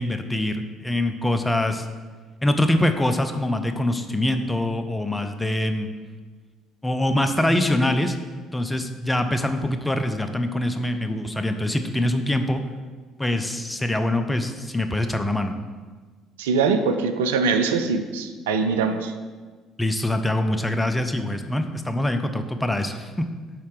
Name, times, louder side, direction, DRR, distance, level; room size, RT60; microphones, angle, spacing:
voice 1, 0.0-1.9 2.4-5.9 6.8-8.2 8.5-12.6 13.2-15.5 19.8-23.3, left 1 dB, 10° left, 7 dB, 0.6 m, -24 dB
voice 2, 16.4-19.1, right 5 dB, 70° right, 7 dB, 0.3 m, -22 dB
5.8 x 4.2 x 4.8 m, 1.4 s
figure-of-eight pair, 50°, 0 cm